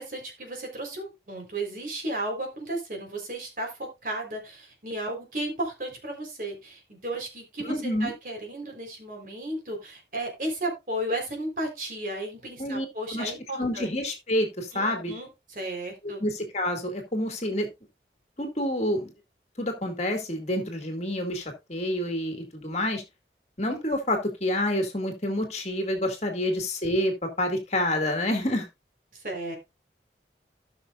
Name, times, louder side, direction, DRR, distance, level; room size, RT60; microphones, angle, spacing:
voice 1, 0.0-13.9 14.7-16.2 29.1-29.6, right 1 dB, 50° right, 2 dB, 4.0 m, -34 dB
voice 2, 7.6-8.1 12.6-13.3 13.6-15.1 16.0-17.7 18.4-19.1 19.6-23.0 23.6-28.7, left 1 dB, 40° left, 4 dB, 2.2 m, -28 dB
17.0 x 6.2 x 2.5 m, 0.22 s
head